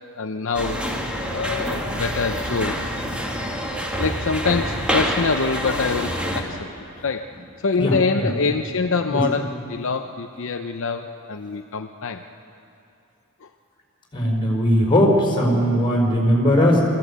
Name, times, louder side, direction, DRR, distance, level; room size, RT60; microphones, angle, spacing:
voice 1, 0.2-3.0 4.0-6.7 7.0-7.3 7.6-12.2 13.4-13.5, left 4 dB, 60° left, 6 dB, 0.6 m, -25 dB
sound 1, 0.5-6.4, equal, 5° right, 2.0 m, -26 dB
voice 2, 7.8-8.3 9.1-9.2 14.1-16.8, equal, 20° left, -2 dB, 4.4 m, -19 dB
24.5 x 15.0 x 8.3 m, 2.7 s
head